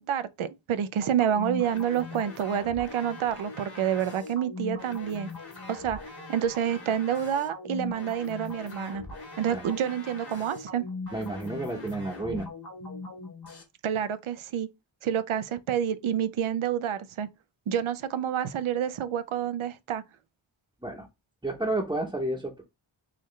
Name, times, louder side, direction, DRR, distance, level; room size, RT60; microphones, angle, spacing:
voice 1, 0.0-5.3 5.7-6.0 6.3-9.0 9.4-10.9 13.8-14.7 15.0-17.3 17.7-20.0, right 9 dB, 80° right, 0.6 m, -28 dB
sound 1, 1.0-13.6, left 3 dB, 50° left, 1.6 m, -40 dB
voice 2, 11.1-12.5 20.8-21.1 21.4-22.6, right 2 dB, 10° right, 0.7 m, -31 dB
3.9 x 3.1 x 3.2 m
wide cardioid pair, 105°, 48 cm